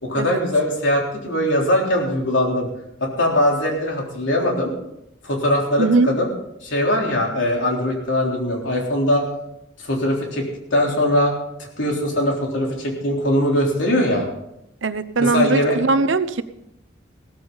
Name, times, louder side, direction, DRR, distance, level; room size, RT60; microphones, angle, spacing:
voice 1, 0.0-2.7 3.0-4.7 5.2-6.3 6.6-9.2 9.8-10.5 10.7-11.3 11.8-14.3 15.2-15.8, left 1 dB, 90° left, 0 dB, 3.7 m, -21 dB
voice 2, 5.8-6.1 14.8-16.4, right 3 dB, 90° right, 13 dB, 0.8 m, -20 dB
16.0 x 14.0 x 4.0 m, 0.83 s
head